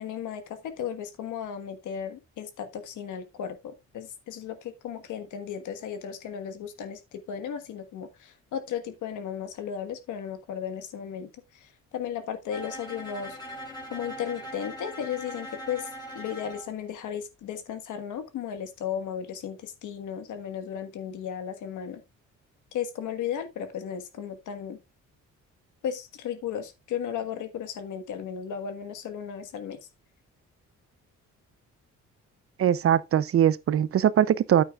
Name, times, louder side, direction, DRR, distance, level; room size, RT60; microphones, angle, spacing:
voice 1, 0.0-13.4 13.9-22.0 22.7-24.8 25.8-29.8, left 8 dB, 80° left, 1.5 m, -35 dB
Bowed string instrument, 12.5-16.7, equal, 15° left, 3.6 m, -40 dB
voice 2, 32.6-34.6, right 10 dB, 50° right, 0.6 m, -21 dB
9.5 x 8.8 x 2.4 m
cardioid pair, 90°, 30 cm